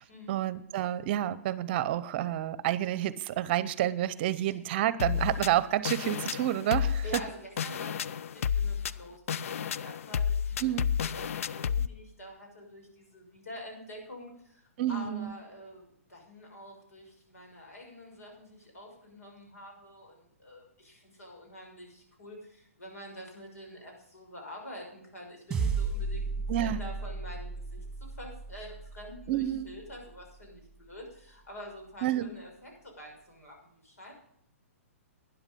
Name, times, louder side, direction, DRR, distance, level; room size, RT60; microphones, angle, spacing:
voice 1, 0.0-7.2 10.6-10.9 14.8-15.3 26.5-26.8 29.3-29.7 32.0-32.3, right 12 dB, 45° right, 17 dB, 0.7 m, -29 dB
sound 1, 5.0-11.9, left 7 dB, 65° left, 0.5 m, -31 dB
voice 2, 7.0-10.7 11.0-33.5 33.8-34.1, equal, 85° left, 1 dB, 6.2 m, -47 dB
sound 2, 25.5-30.1, right 4 dB, 10° right, 2.3 m, -35 dB
12.0 x 10.5 x 5.3 m, 0.70 s
hypercardioid pair, 135°, 8 cm